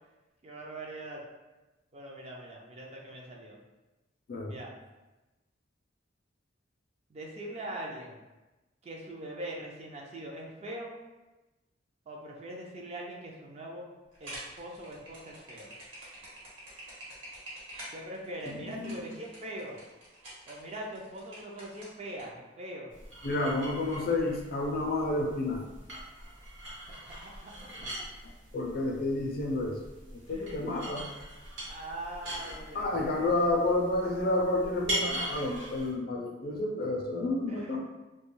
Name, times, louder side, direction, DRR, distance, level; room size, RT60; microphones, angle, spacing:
voice 1, 0.4-1.2 1.9-3.6 4.4-4.7 7.1-8.2 8.8-11.0 12.1-13.9 14.2-15.7 17.9-19.8 20.5-22.9 27.0-28.0 30.3-30.8 31.7-33.5 37.5-37.8, right 1 dB, 35° right, -1 dB, 0.4 m, -42 dB
sound 1, 14.1-22.2, right 1 dB, 80° right, 1.1 m, -47 dB
voice 2, 18.5-19.0 23.2-25.6 28.5-29.8 30.3-31.0 32.7-37.8, left 2 dB, 50° left, 1 dB, 0.4 m, -30 dB
sound 2, 22.9-35.9, right 1 dB, 60° right, 0.9 m, -41 dB
2.3 x 2.2 x 3.0 m, 1.1 s
head